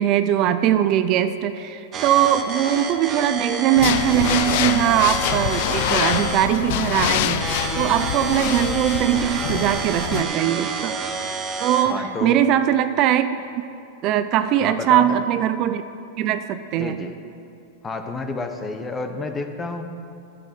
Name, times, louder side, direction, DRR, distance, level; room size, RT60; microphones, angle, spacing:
voice 1, 0.0-10.9 11.6-13.4 14.0-15.8 16.2-17.0, right 10 dB, 40° right, 10 dB, 0.5 m, -21 dB
sound 1, 1.9-11.9, right 5 dB, 25° right, 1.0 m, -29 dB
sound 2, 3.8-10.2, left 12 dB, 60° left, 0.4 m, -25 dB
voice 2, 11.8-12.4 14.6-15.1 16.8-17.2 17.8-19.9, left 3 dB, 15° left, 6 dB, 0.9 m, -30 dB
9.8 x 7.8 x 7.7 m, 2.7 s
supercardioid pair, 140°, 0 cm